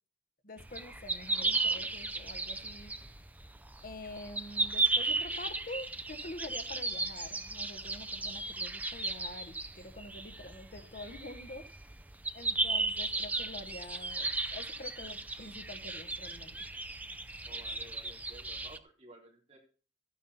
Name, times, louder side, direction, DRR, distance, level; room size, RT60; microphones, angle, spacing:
voice 1, 0.4-2.9 3.8-11.6 12.3-16.6, left 2 dB, 50° left, 7 dB, 1.2 m, -46 dB
sound 1, 0.6-18.8, right 3 dB, 10° right, 0.5 m, -35 dB
voice 2, 17.5-19.6, right 1 dB, 35° right, -2 dB, 3.6 m, -54 dB
12.5 x 9.3 x 4.2 m, 0.38 s
head